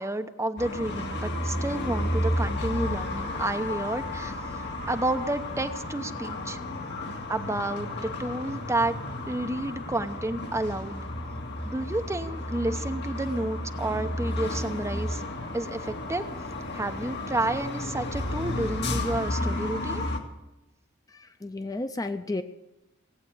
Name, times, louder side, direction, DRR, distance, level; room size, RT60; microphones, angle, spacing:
voice 1, 0.0-4.3 4.9-6.6 7.3-9.0 9.3-11.0 11.6-15.2 15.5-16.3 16.7-20.0, right 2 dB, 15° right, 7 dB, 0.9 m, -30 dB
sound 1, 0.6-20.2, left 1 dB, 55° left, 2.2 m, -32 dB
voice 2, 21.1-22.4, left 2 dB, 15° left, 9 dB, 0.6 m, -33 dB
17.5 x 8.5 x 8.5 m, 0.99 s
head